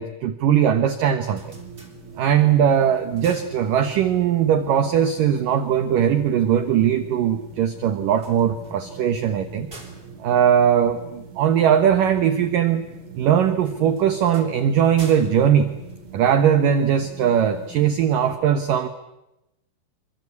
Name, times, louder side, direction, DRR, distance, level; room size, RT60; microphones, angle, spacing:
voice 1, 0.0-1.5 2.2-9.7 10.2-12.8 13.2-15.7 16.1-18.9, right 9 dB, 75° right, 10 dB, 2.0 m, -20 dB
sound 1, 1.2-2.5 2.9-4.2 8.0-11.5 13.6-16.6, right 1 dB, 15° right, 3.2 m, -47 dB
sound 2, 1.4-18.4, right 4 dB, 45° right, 5.6 m, -42 dB
27.5 x 24.5 x 8.5 m, 0.92 s
omnidirectional pair, 5.6 m